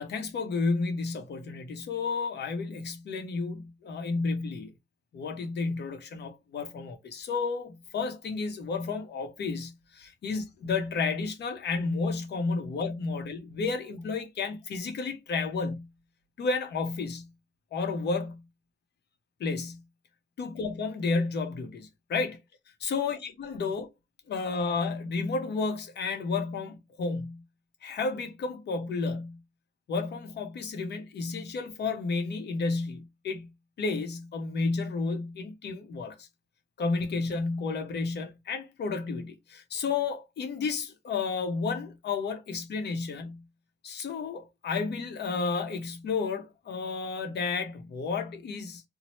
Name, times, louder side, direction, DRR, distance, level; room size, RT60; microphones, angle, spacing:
voice 1, 0.0-4.7 5.1-15.9 16.4-17.3 17.7-18.4 19.4-19.8 20.4-22.4 22.8-23.9 24.3-27.4 27.8-29.4 29.9-33.5 33.8-36.3 36.8-43.4 43.8-48.8, left 4 dB, 60° left, 0.7 m, -32 dB
3.0 x 2.0 x 2.9 m
cardioid pair, 90°, 20 cm